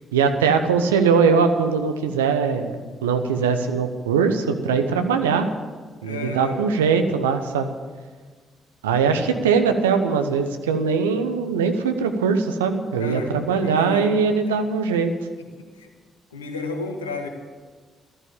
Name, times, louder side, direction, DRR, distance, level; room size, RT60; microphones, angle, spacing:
voice 1, 0.1-5.5 6.0-7.7 8.8-15.1, right 5 dB, 80° right, 7 dB, 1.0 m, -21 dB
voice 2, 6.0-6.6 13.0-14.1 14.5-14.6 15.4-15.9 16.3-17.3, left 3 dB, 85° left, 4 dB, 1.5 m, -32 dB
14.0 x 13.5 x 7.3 m, 1.5 s
figure-of-eight pair, 40°, 0 cm